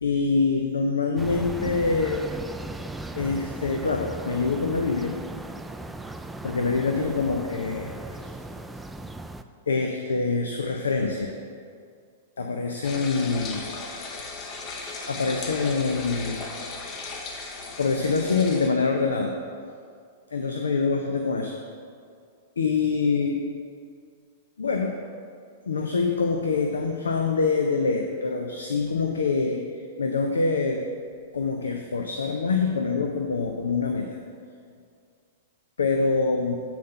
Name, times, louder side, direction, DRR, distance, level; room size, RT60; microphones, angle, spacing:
voice 1, 0.0-2.3 3.2-5.1 6.4-8.3 9.7-11.3 12.4-13.7 14.8-16.4 17.8-19.3 20.3-21.6 22.6-23.4 24.6-25.0 25.7-30.9 31.3-34.2 35.8-36.6, left 4 dB, 80° left, 3 dB, 0.6 m, -25 dB
sound 1, 1.2-9.4, right 2 dB, 5° right, 0.3 m, -37 dB
sound 2, 12.8-18.7, left 3 dB, 35° left, 0.9 m, -36 dB
8.3 x 4.1 x 5.6 m, 2.2 s
hypercardioid pair, 105°, 0 cm